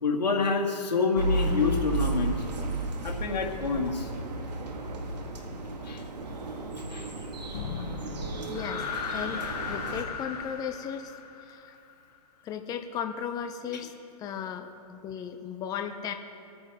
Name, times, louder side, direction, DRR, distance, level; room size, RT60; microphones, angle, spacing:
voice 1, 0.0-2.4 3.0-4.1 5.8-6.0 6.9-7.1, left 4 dB, 90° left, 0 dB, 2.0 m, -27 dB
sound 1, 1.2-10.0, right 2 dB, 75° right, 1.7 m, -33 dB
sound 2, 7.5-11.9, left 6 dB, 65° left, 1.2 m, -37 dB
voice 2, 8.5-11.8 12.4-13.9 14.2-16.1, left 8 dB, 20° left, 6 dB, 0.6 m, -36 dB
24.5 x 9.3 x 3.5 m, 2.5 s
hypercardioid pair, 130°, 21 cm